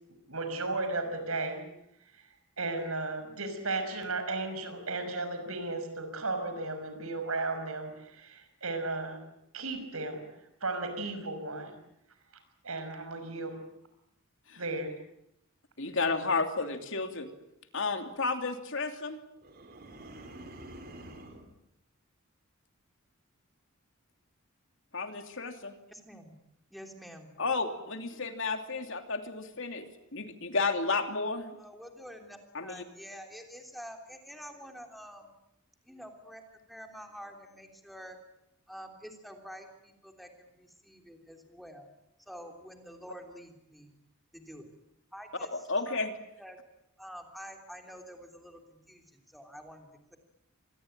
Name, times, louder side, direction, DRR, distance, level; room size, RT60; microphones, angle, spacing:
voice 1, 0.3-1.6 2.6-9.2 9.5-10.2 10.6-11.7 12.6-13.6 14.5-14.9, right 3 dB, 85° right, 8 dB, 5.6 m, -34 dB
voice 2, 15.8-17.3 17.7-19.2 24.9-25.7 27.4-31.6 32.5-32.8 45.5-46.1, left 3 dB, 60° left, 6 dB, 3.0 m, -32 dB
sound 1, 19.4-21.5, right 1 dB, 45° right, 4.0 m, -47 dB
voice 3, 25.9-26.4 26.7-27.3 31.6-35.3 35.8-36.4 36.7-38.2 38.7-41.9 42.3-43.9 44.3-44.7 45.1-45.5 45.8-46.0 46.4-46.6 47.0-50.2, equal, ahead, 4 dB, 3.3 m, -48 dB
26.0 x 20.5 x 9.0 m, 0.81 s
head